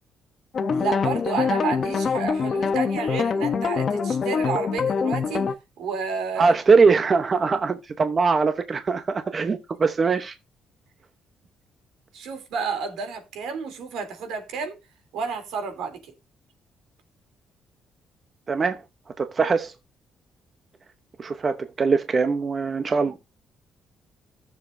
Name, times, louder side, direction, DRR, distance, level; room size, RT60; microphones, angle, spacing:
sound 1, 0.5-5.5, left 5 dB, 50° left, 1.0 m, -24 dB
voice 1, 0.7-5.5 5.8-6.6 12.1-14.8 15.1-16.1 23.0-23.2, right 5 dB, 85° right, 3.2 m, -30 dB
voice 2, 6.4-10.3 18.5-18.8 19.2-19.7 21.2-23.2, right 4 dB, 40° right, 0.9 m, -21 dB
15.0 x 7.1 x 2.7 m
cardioid pair, 90°, 0 cm